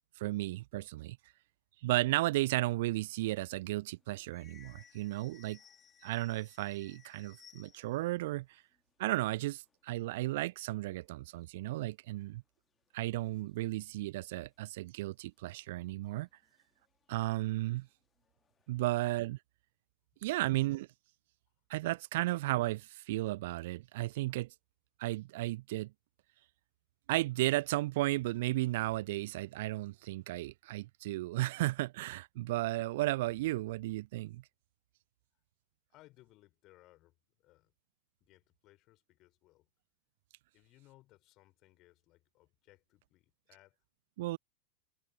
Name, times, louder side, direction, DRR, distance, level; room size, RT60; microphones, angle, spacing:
voice 1, 0.2-1.2 1.8-5.6 6.0-8.6 9.0-12.4 12.9-16.3 17.1-17.9 18.7-19.4 20.2-20.9 21.7-24.5 25.0-25.9 27.1-34.4 44.2-44.4, right 18 dB, 50° right, 0.4 m, -34 dB
sound 1, 3.1-8.1 8.4-8.5 8.7-10.1 10.6-10.7 10.9-11.4 12.2-12.3 12.9-13.8 14.3-14.4 15.5-15.6 16.1-17.5 17.8-18.8, left 7 dB, 20° left, 1.6 m, -63 dB
voice 2, 35.9-37.7 38.2-39.7 40.5-43.8, left 18 dB, 40° left, 4.5 m, -64 dB
figure-of-eight pair, 90°, 0 cm